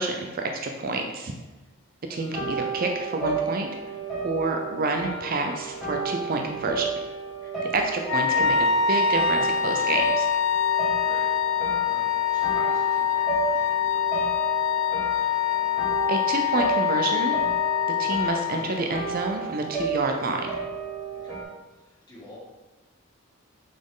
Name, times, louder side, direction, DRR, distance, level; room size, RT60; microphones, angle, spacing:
voice 1, 0.0-1.3 2.1-3.8 4.2-6.9 7.7-10.3 16.1-17.5 18.0-20.5, right 3 dB, 45° right, 3 dB, 0.5 m, -28 dB
sound 1, 2.1-21.4, right 4 dB, ahead, 1.8 m, -33 dB
Wind instrument woodwind instrument, 8.0-18.8, left 8 dB, 65° left, 0.5 m, -24 dB
voice 2, 11.0-14.4 21.1-21.4 21.7-22.4, left 1 dB, 20° left, -7 dB, 1.8 m, -47 dB
6.2 x 4.3 x 3.8 m, 1.1 s
head